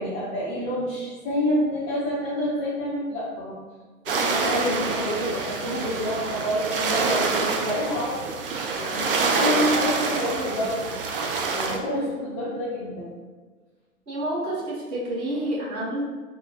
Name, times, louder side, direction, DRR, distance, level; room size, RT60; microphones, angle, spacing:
voice 1, 0.0-3.6 4.1-8.3 8.8-10.9 11.5-13.1, equal, 20° left, -8 dB, 0.6 m, -28 dB
sound 1, 4.1-11.8, right 4 dB, 40° right, 0.4 m, -26 dB
voice 2, 4.4-4.8 14.1-16.0, right 1 dB, 25° right, -7 dB, 1.2 m, -29 dB
4.3 x 2.1 x 2.8 m, 1.4 s
figure-of-eight pair, 110°, 43 cm